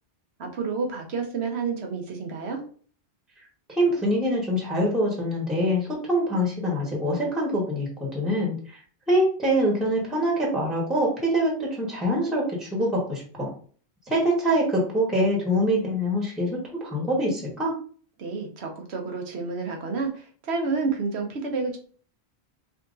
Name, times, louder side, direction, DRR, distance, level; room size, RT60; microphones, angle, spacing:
voice 1, 0.4-2.6 18.2-21.8, right 4 dB, 90° right, 3 dB, 1.2 m, -29 dB
voice 2, 3.7-8.8 9.1-13.5 14.1-17.7, equal, ahead, -2 dB, 1.1 m, -24 dB
4.9 x 2.9 x 2.5 m, 0.44 s
omnidirectional pair, 1.1 m